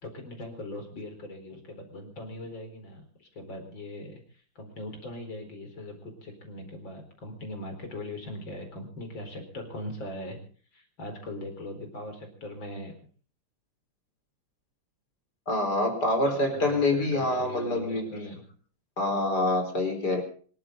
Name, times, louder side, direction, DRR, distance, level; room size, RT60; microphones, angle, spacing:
voice 1, 0.0-10.4 10.7-12.9 16.1-18.4, left 1 dB, 80° left, 5 dB, 5.1 m, -40 dB
voice 2, 15.5-18.3 19.0-20.2, left 2 dB, 60° left, 5 dB, 5.2 m, -26 dB
26.0 x 14.0 x 3.9 m, 0.44 s
omnidirectional pair, 2.0 m